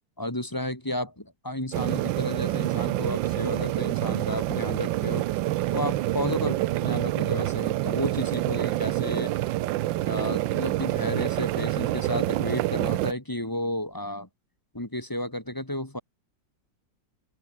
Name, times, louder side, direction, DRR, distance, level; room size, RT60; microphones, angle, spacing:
voice 1, 0.2-5.3 5.7-6.5 6.8-9.3 10.0-14.3 14.7-16.0, left 1 dB, 10° left, 2.1 m, -32 dB
sound 1, 1.7-13.1, right 15 dB, 85° right, 1.4 m, -27 dB
open air
omnidirectional pair, 2.0 m